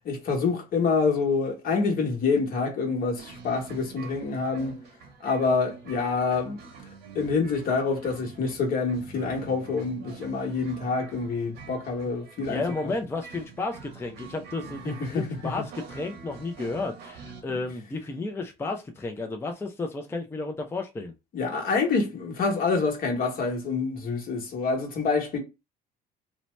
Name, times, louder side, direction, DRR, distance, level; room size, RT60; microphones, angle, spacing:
voice 1, 0.0-4.8 5.2-6.6 7.1-12.6 14.8-15.5 21.3-25.4, left 4 dB, 60° left, 1.1 m, -27 dB
sound 1, 3.2-17.4, right 5 dB, 80° right, 0.9 m, -46 dB
voice 2, 12.5-21.1, left 3 dB, 15° left, 0.4 m, -32 dB
2.7 x 2.1 x 3.0 m
cardioid pair, 110°, 17 cm